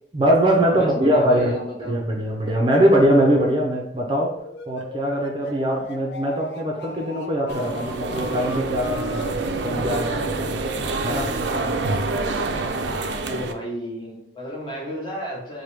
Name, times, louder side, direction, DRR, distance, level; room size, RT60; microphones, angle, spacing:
voice 1, 0.1-4.4 4.7-10.6 11.0-11.9, equal, 25° right, -1 dB, 0.6 m, -22 dB
voice 2, 0.7-1.9 13.1-15.6, equal, 25° left, -4 dB, 1.1 m, -32 dB
sound 1, 4.4-9.4, left 2 dB, 80° left, 0.5 m, -39 dB
sound 2, 7.5-13.5, right 3 dB, 80° right, 0.4 m, -26 dB
4.7 x 2.2 x 3.3 m, 0.73 s
head